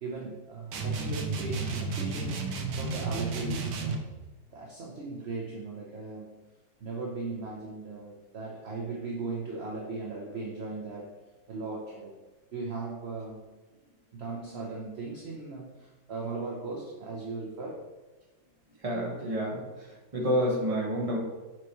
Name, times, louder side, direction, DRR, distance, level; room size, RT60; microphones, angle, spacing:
voice 1, 0.0-2.4 2.8-4.1 4.5-6.3 6.8-11.1 11.5-12.1 12.5-13.4 14.1-17.8, right 3 dB, 45° right, -2 dB, 0.9 m, -38 dB
sound 1, 0.7-4.1, right 3 dB, 65° right, 1.4 m, -32 dB
voice 2, 18.8-21.2, equal, 20° right, -3 dB, 1.4 m, -29 dB
7.3 x 6.0 x 3.1 m, 1.2 s
omnidirectional pair, 2.1 m